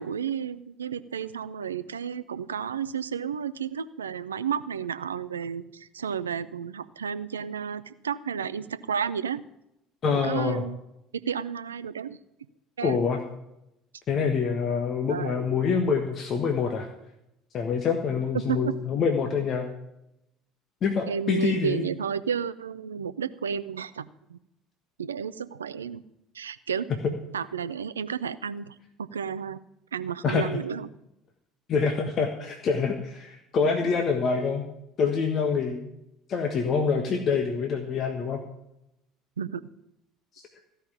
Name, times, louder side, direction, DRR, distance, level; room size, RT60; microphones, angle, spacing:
voice 1, 0.0-9.4 10.1-10.8 11.2-12.2 12.8-13.0 15.1-15.3 18.3-18.7 21.1-24.4 25.0-26.0 26.3-26.9 27.3-29.6 29.9-30.9 39.4-39.6, right 7 dB, 85° right, 15 dB, 0.5 m, -32 dB
voice 2, 10.0-10.6 12.8-13.2 14.1-16.9 17.5-19.7 20.8-21.8 30.2-30.6 31.7-34.6 35.0-35.9 36.3-38.4, left 5 dB, 45° left, 4 dB, 1.4 m, -26 dB
15.0 x 5.7 x 8.9 m, 0.85 s
hypercardioid pair, 60°, 0 cm